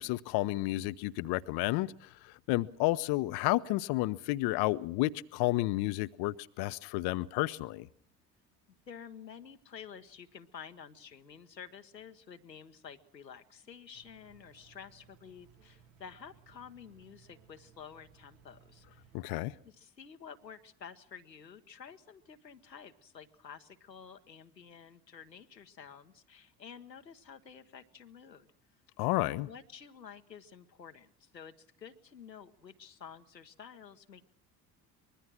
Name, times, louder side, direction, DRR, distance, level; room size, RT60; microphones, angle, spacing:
voice 1, 0.0-7.9 19.1-19.5 29.0-29.5, left 19 dB, 50° left, 0.8 m, -31 dB
voice 2, 8.9-19.1 19.6-28.5 29.3-34.2, left 7 dB, 90° left, 1.1 m, -51 dB
sound 1, 13.9-19.2, right 6 dB, 65° right, 2.8 m, -62 dB
24.5 x 21.5 x 6.2 m
figure-of-eight pair, 60°, 49 cm